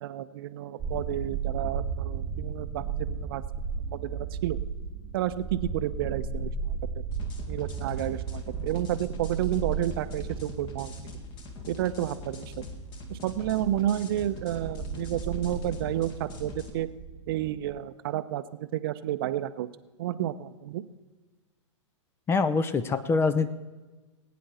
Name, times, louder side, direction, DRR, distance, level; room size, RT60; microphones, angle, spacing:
voice 1, 0.0-3.4 3.9-4.6 5.1-6.8 7.5-10.9 11.7-12.6 13.1-16.9 17.3-19.7 20.0-20.8, right 12 dB, 50° right, 13 dB, 0.7 m, -31 dB
sound 1, 0.8-17.8, right 6 dB, 15° right, 1.0 m, -35 dB
sound 2, 7.1-16.7, left 5 dB, 30° left, 1.7 m, -43 dB
voice 2, 22.3-23.5, left 4 dB, 15° left, 13 dB, 0.5 m, -24 dB
20.0 x 9.4 x 4.2 m, 1.2 s
figure-of-eight pair, 115°, 16 cm